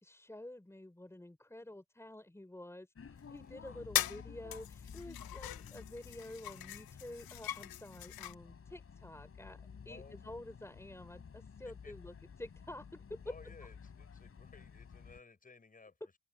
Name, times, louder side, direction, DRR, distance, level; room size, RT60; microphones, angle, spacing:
voice 1, 0.0-13.4, left 1 dB, 5° left, 4.2 m, -49 dB
sound 1, 3.0-15.2, left 6 dB, 35° left, 5.6 m, -53 dB
sound 2, 3.3-3.4 3.9-4.2 4.5-8.3, left 13 dB, 75° left, 0.8 m, -40 dB
voice 2, 3.4-3.8 9.9-10.3 11.6-11.9 13.2-16.2, left 4 dB, 20° left, 5.9 m, -58 dB
cardioid pair, 150°, 37 cm